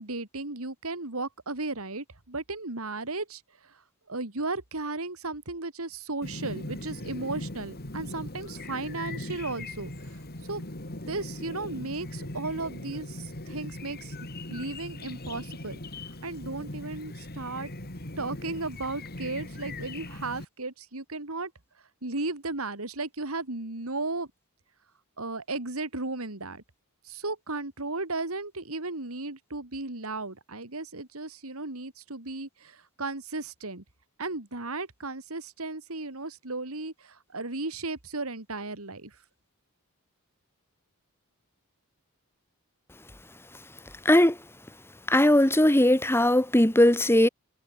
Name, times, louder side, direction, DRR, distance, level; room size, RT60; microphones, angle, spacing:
voice 1, 0.0-3.4 4.1-10.2 10.5-10.6 11.1-14.1 14.5-15.8 16.2-17.7 18.2-21.5 22.0-24.3 25.2-26.6 27.0-33.8 34.2-39.1, right 3 dB, 70° right, 2.8 m, -35 dB
Chirp tweet, 6.2-20.4, left 1 dB, 45° left, 3.2 m, -39 dB
voice 2, 44.1-44.4 45.1-47.3, left 1 dB, 10° left, 1.9 m, -19 dB
head